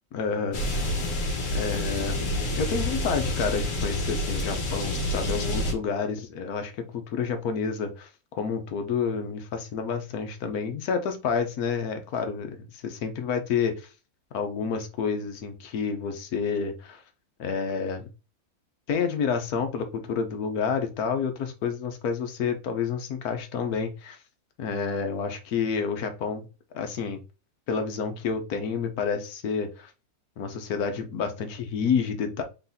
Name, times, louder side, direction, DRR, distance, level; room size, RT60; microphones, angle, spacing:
voice 1, 0.1-0.6 1.5-2.2 2.6-13.8 14.3-17.0 17.4-18.1 18.9-24.2 24.6-26.5 26.7-27.2 27.7-29.9 30.4-32.4, left 6 dB, 75° left, 7 dB, 1.3 m, -29 dB
sound 1, 0.5-5.7, left 1 dB, 60° left, 1.6 m, -28 dB
4.1 x 3.9 x 2.7 m, 0.31 s
omnidirectional pair, 1.6 m